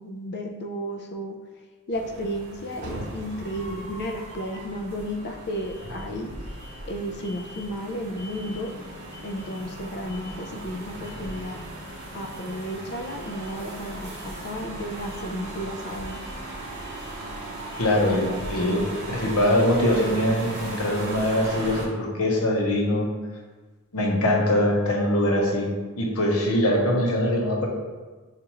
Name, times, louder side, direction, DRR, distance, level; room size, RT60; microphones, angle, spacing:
voice 1, 0.0-1.4 1.9-6.3 6.8-8.7 9.2-11.6 12.1-16.2, equal, 50° left, 3 dB, 0.4 m, -33 dB
sound 1, 1.9-21.9, right 1 dB, 50° right, 0.9 m, -37 dB
voice 2, 17.8-18.8 19.1-23.1 23.9-25.7 26.0-27.7, left 1 dB, 80° left, 0 dB, 0.8 m, -22 dB
5.4 x 2.5 x 2.9 m, 1.3 s
head